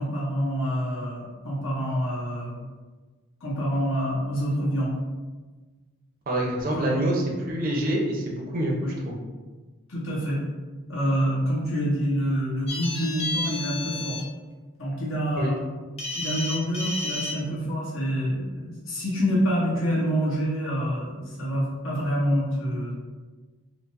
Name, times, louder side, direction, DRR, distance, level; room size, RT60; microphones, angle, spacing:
voice 1, 0.0-2.6 3.4-4.9 6.7-6.9 8.8-8.9 9.9-10.4 10.9-14.2 14.8-15.6 16.1-23.0, equal, 70° left, -7 dB, 1.2 m, -27 dB
voice 2, 6.3-8.8 9.0-9.2 15.4-15.5, right 1 dB, 40° right, -1 dB, 0.5 m, -26 dB
sound 1, 12.7-14.2 16.0-17.3, left 2 dB, 30° left, 0.5 m, -31 dB
4.4 x 2.0 x 2.5 m, 1.3 s
head